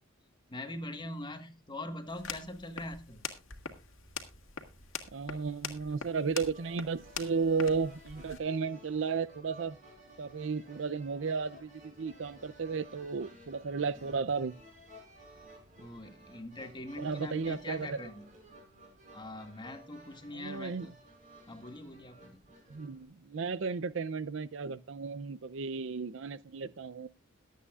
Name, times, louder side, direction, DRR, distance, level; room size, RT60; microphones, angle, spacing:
voice 1, 0.5-3.2 15.8-18.2 19.1-21.0 21.5-22.4, left 1 dB, 20° left, 1.4 m, -43 dB
sound 1, 2.1-8.4, left 6 dB, 80° left, 1.8 m, -44 dB
voice 2, 5.1-9.8 10.2-14.5 17.0-18.0 20.3-20.9 22.7-27.1, right 5 dB, 65° right, 0.5 m, -34 dB
sound 2, 6.5-23.0, right 1 dB, 40° right, 5.2 m, -55 dB
22.0 x 8.4 x 2.4 m
head